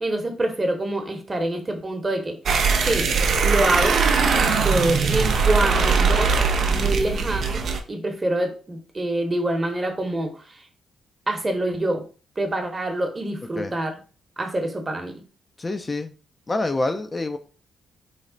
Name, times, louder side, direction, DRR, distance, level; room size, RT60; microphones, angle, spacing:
voice 1, 0.0-2.4 2.8-3.1 3.4-4.0 4.5-6.3 6.7-10.4 11.3-12.0 12.4-13.9 14.4-15.2, right 1 dB, 30° right, 5 dB, 0.9 m, -26 dB
sound 1, 2.5-7.8, right 5 dB, 65° right, 0.5 m, -20 dB
voice 2, 15.6-16.1 16.5-17.4, left 2 dB, 30° left, 7 dB, 0.4 m, -26 dB
3.2 x 2.0 x 3.8 m, 0.37 s
supercardioid pair, 60°, 0 cm